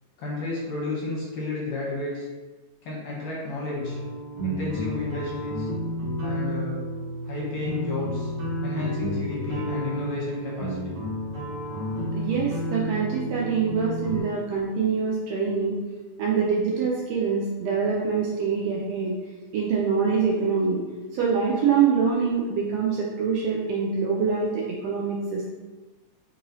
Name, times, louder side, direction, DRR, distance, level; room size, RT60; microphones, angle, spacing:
voice 1, 0.2-2.3 2.8-4.0 4.4-5.7 6.2-6.8 7.2-8.3 8.6-11.0 21.6-21.7, left 3 dB, 70° left, -5 dB, 2.1 m, -32 dB
sound 1, 3.7-14.2, equal, 45° right, 1.8 m, -31 dB
voice 2, 12.1-15.8 16.2-19.2 19.5-20.8 21.1-25.5, right 5 dB, 85° right, -3 dB, 1.4 m, -25 dB
4.6 x 2.9 x 2.7 m, 1.2 s
omnidirectional pair, 3.4 m